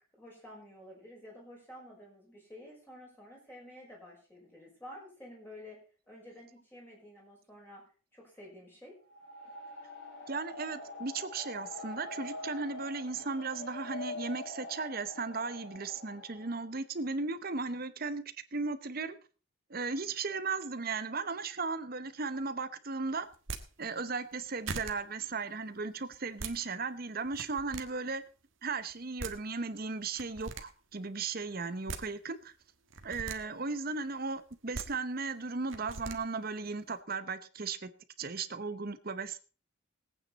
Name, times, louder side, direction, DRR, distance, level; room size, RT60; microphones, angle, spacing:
voice 1, 0.2-5.8 6.1-7.9 8.1-8.9, left 1 dB, 10° left, -3 dB, 5.8 m, -51 dB
sound 1, 9.0-16.7, left 2 dB, 85° left, 5.2 m, -45 dB
voice 2, 10.3-18.2 18.5-19.2 19.7-23.3 23.8-28.2 28.6-32.5 33.0-37.9 38.2-39.4, right 4 dB, 45° right, 13 dB, 0.9 m, -36 dB
sound 2, 23.3-23.6 24.3-24.4 24.7-24.9 26.1-26.5 27.3-27.8 28.9-29.0 29.2-29.3 30.2-30.6 31.6-32.0 32.9-33.4 34.5-34.9 35.7-36.2, right 4 dB, 75° right, 1.5 m, -39 dB
20.0 x 9.0 x 4.1 m, 0.36 s
head